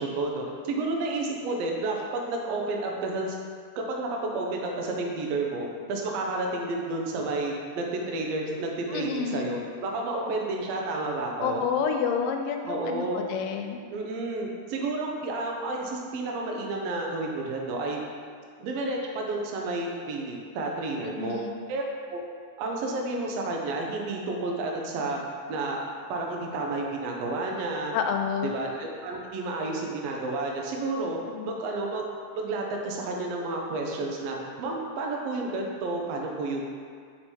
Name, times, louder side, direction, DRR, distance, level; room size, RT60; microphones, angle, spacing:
voice 1, 0.0-3.4 3.8-11.6 12.6-13.2 13.9-18.0 18.6-21.4 21.7-21.8 22.1-22.2 22.6-25.2 25.5-27.9 28.4-31.2 31.4-32.1 32.3-36.6, right 2 dB, 75° right, 0 dB, 1.5 m, -31 dB
voice 2, 8.9-9.5 11.4-13.8 21.0-21.6 27.9-28.5 31.3-31.6, left 6 dB, 90° left, 4 dB, 2.2 m, -29 dB
5.0 x 4.3 x 4.4 m, 2.1 s
omnidirectional pair, 3.7 m